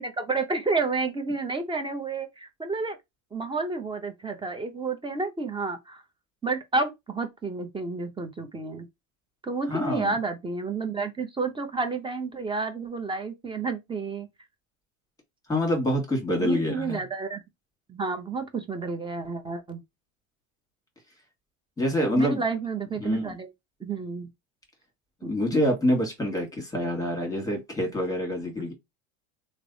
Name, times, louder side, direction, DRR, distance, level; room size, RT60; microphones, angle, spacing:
voice 1, 0.0-3.0 3.3-6.0 6.4-8.9 9.4-14.3 16.4-17.4 17.9-19.8 22.2-23.5 23.8-24.3 25.2-25.3, right 3 dB, 10° right, 0.8 m, -30 dB
voice 2, 9.7-10.1 15.5-17.0 21.8-22.4 23.0-23.3 25.2-28.7, left 1 dB, 10° left, 1.6 m, -26 dB
3.2 x 2.1 x 3.9 m
supercardioid pair, 105°, 39 cm